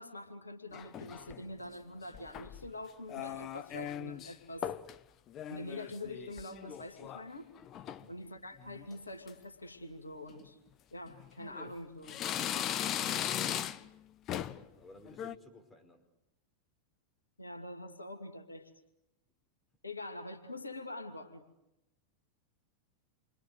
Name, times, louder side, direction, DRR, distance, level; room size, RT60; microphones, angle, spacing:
voice 1, 0.0-4.7 5.5-7.5 8.1-10.6 10.9-12.2 13.0-13.2 17.4-18.7 19.8-21.4, left 1 dB, 80° left, 4 dB, 2.7 m, -45 dB
sound 1, 0.7-1.5 2.1-2.7 3.1-4.3 4.6-5.0 5.3-7.3 7.6-8.1 8.6-8.9 9.3-9.4 10.3-10.5 11.1-11.7 12.1-14.0 14.3-14.7 15.1-15.4, left 10 dB, 35° left, 1.0 m, -38 dB
voice 2, 7.8-8.3 14.4-16.1, left 2 dB, 10° left, 4 dB, 5.3 m, -57 dB
29.0 x 25.0 x 8.1 m, 0.88 s
figure-of-eight pair, 90°, 0 cm